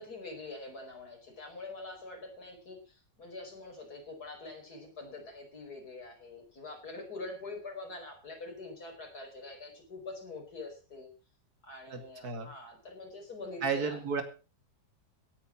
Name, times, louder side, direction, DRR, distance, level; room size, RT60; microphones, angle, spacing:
voice 1, 0.0-11.1 11.6-14.0, left 3 dB, 60° left, 3 dB, 5.5 m, -45 dB
voice 2, 11.9-12.5 13.6-14.2, right 5 dB, 60° right, 7 dB, 2.9 m, -33 dB
18.0 x 9.4 x 6.0 m, 0.36 s
omnidirectional pair, 1.9 m